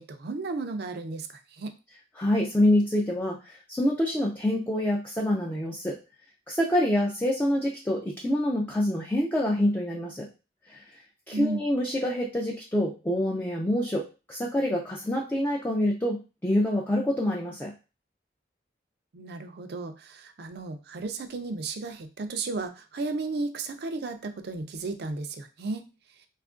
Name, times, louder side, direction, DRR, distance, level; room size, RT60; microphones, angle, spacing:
voice 1, 0.0-1.7 11.3-11.6 19.1-25.9, right 3 dB, 60° right, 7 dB, 0.4 m, -34 dB
voice 2, 2.2-6.0 6.5-10.3 10.7-11.0 11.3-17.7, left 1 dB, 10° left, -2 dB, 0.4 m, -26 dB
2.8 x 2.4 x 3.6 m, 0.31 s
head